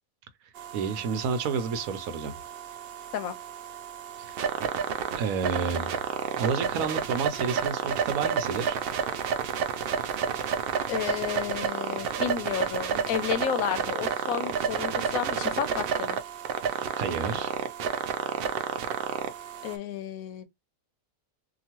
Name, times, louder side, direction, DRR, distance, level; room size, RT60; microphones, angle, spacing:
sound 1, 0.6-19.8, right 7 dB, 65° right, 0.5 m, -31 dB
voice 1, 0.7-2.3 4.2-4.4 5.1-5.9 6.4-8.8 16.9-17.5, right 5 dB, 85° right, 1.1 m, -30 dB
voice 2, 10.9-16.2 19.6-20.5, left 9 dB, 85° left, 1.1 m, -32 dB
2.9 x 2.4 x 2.9 m
omnidirectional pair, 1.4 m